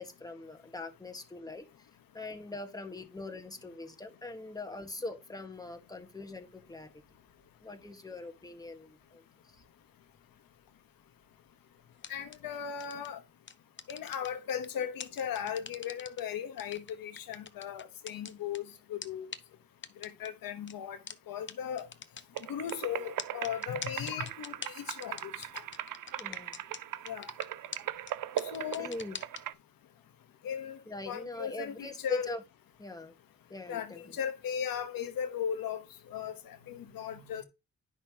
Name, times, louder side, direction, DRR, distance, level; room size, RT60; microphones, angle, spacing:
voice 1, 0.0-1.9 2.1-7.0 7.6-9.2 26.2-26.6 28.8-29.2 30.9-32.4 32.8-33.1 33.5-34.0, left 2 dB, 10° left, 1.4 m, -42 dB
sound 1, 12.0-12.4 12.8-13.1 13.5-14.7 15.0-16.2 16.6-18.6 19.0-19.1 19.3-19.4 19.8-20.3 20.7-20.8 21.1-21.2 21.5-21.6 21.8-22.7 23.2-26.8 27.1-27.4 27.7-27.8 28.1-28.2 28.4-29.4, left 6 dB, 35° left, 0.8 m, -42 dB
voice 2, 12.1-13.2 13.9-19.3 20.0-21.0 21.3-21.9 22.5-25.5 27.1-27.3 28.5-28.9 30.4-30.8 31.0-32.3 33.7-35.8 36.1-37.4, left 8 dB, 85° left, 1.1 m, -37 dB
sound 2, 22.3-29.5, right 12 dB, 70° right, 0.5 m, -39 dB
10.0 x 5.8 x 2.9 m
cardioid pair, 70°, 34 cm